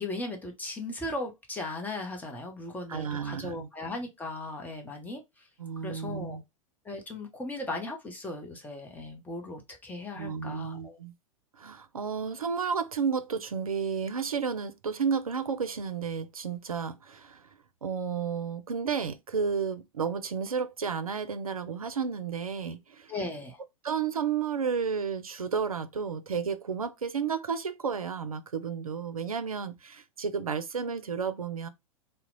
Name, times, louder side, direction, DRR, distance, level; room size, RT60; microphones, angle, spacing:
voice 1, 0.0-5.5 5.8-6.4 6.8-11.0 23.1-23.6, left 2 dB, 10° left, 0.7 m, -37 dB
voice 2, 2.9-3.7 5.6-6.4 10.2-11.1 11.6-17.4 17.8-23.1 23.8-31.7, right 6 dB, 80° right, 0.4 m, -32 dB
2.8 x 2.0 x 3.8 m
figure-of-eight pair, 95°, 18 cm